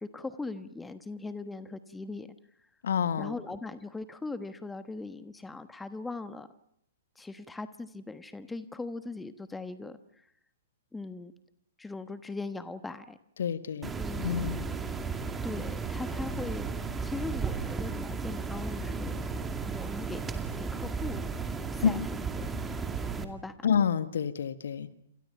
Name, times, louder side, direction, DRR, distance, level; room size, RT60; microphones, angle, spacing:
voice 1, 0.0-2.3 3.2-6.5 7.2-10.2 10.9-11.3 11.8-13.2 14.0-14.5 15.4-16.7 17.0-19.2 19.6-20.2 20.6-21.2 21.7-22.5 23.2-23.7, left 3 dB, 5° left, 12 dB, 1.2 m, -40 dB
voice 2, 2.8-3.3 13.4-14.7 21.8-21.9 23.6-24.9, left 7 dB, 60° left, 12 dB, 1.6 m, -28 dB
sound 1, 13.8-23.2, right 4 dB, 10° right, 2.3 m, -34 dB
28.0 x 26.5 x 5.8 m, 0.73 s
figure-of-eight pair, 110°, 0 cm